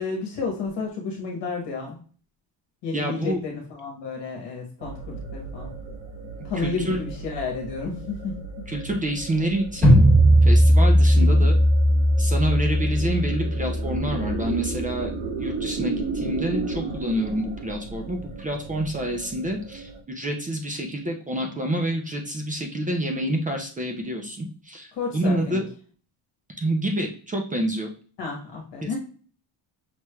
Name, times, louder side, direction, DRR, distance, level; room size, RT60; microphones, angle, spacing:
voice 1, 0.0-2.0 2.8-5.7 6.4-8.7 11.1-11.5 24.9-25.6 28.2-29.0, left 4 dB, 60° left, -1 dB, 1.1 m, -31 dB
voice 2, 2.9-3.4 6.6-7.0 8.7-10.0 10.4-11.6 12.2-15.1 15.4-24.9 25.1-25.6 26.6-27.9 28.8-28.9, right 1 dB, 20° right, 3 dB, 0.3 m, -27 dB
sound 1, 4.8-20.0, right 4 dB, 75° right, 1.1 m, -35 dB
sound 2, 9.8-14.9, equal, 5° left, 1.7 m, -18 dB
5.7 x 3.1 x 2.2 m, 0.42 s
cardioid pair, 165°, 48 cm